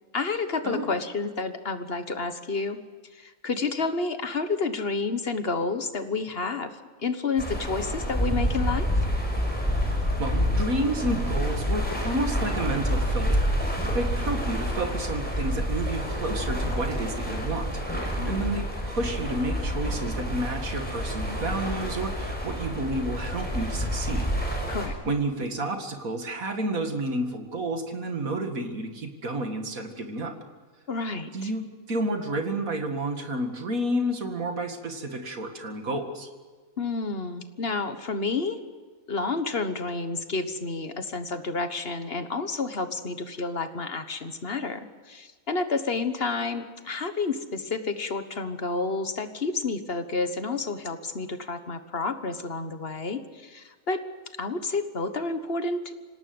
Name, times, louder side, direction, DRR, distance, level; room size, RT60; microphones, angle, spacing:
voice 1, 0.1-2.8 3.1-8.9 18.2-18.6 24.7-24.9 30.9-31.5 36.8-38.6 39.1-54.0 54.4-55.9, left 3 dB, 45° left, 9 dB, 1.5 m, -30 dB
sound 1, 7.4-24.9, equal, 5° left, 6.0 m, -28 dB
voice 2, 9.7-24.3 25.0-30.4 31.3-36.3, right 1 dB, 85° right, 5 dB, 2.6 m, -30 dB
26.0 x 18.0 x 7.9 m, 1.4 s
omnidirectional pair, 1.4 m